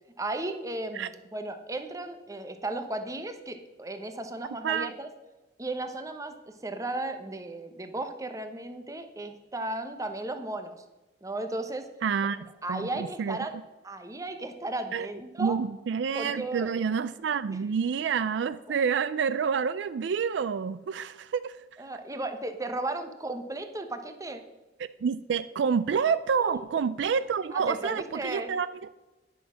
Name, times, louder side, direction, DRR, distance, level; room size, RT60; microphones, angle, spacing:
voice 1, 0.2-5.1 5.6-10.8 11.2-11.9 12.6-13.5 13.8-15.6 16.1-16.7 21.8-24.4 26.4-26.6 27.5-28.5, right 2 dB, 20° right, 7 dB, 0.9 m, -35 dB
voice 2, 12.0-13.4 14.9-15.1 15.4-21.6 25.0-28.7, right 6 dB, 70° right, 14 dB, 0.4 m, -28 dB
11.0 x 6.3 x 6.1 m, 1.1 s
head